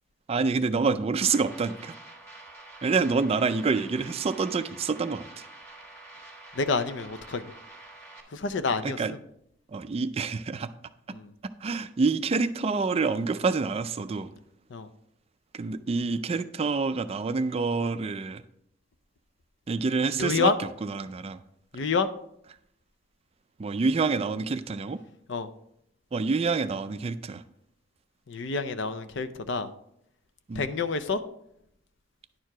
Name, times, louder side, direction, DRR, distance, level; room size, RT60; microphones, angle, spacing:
voice 1, 0.3-1.9 2.8-5.5 8.8-9.1 9.7-10.7 11.6-14.3 15.5-18.4 19.7-20.5 20.8-21.4 23.6-25.0 26.1-27.4 30.5-30.7, right 4 dB, 30° right, 12 dB, 0.3 m, -27 dB
sound 1, 1.2-8.2, right 2 dB, 15° left, 1.3 m, -47 dB
voice 2, 6.5-7.4 8.3-9.0 11.1-11.3 14.7-14.9 20.2-20.6 21.7-22.1 25.3-25.5 28.3-29.7 30.6-31.2, left 4 dB, 65° left, 12 dB, 0.5 m, -28 dB
10.0 x 4.6 x 4.8 m, 0.75 s
head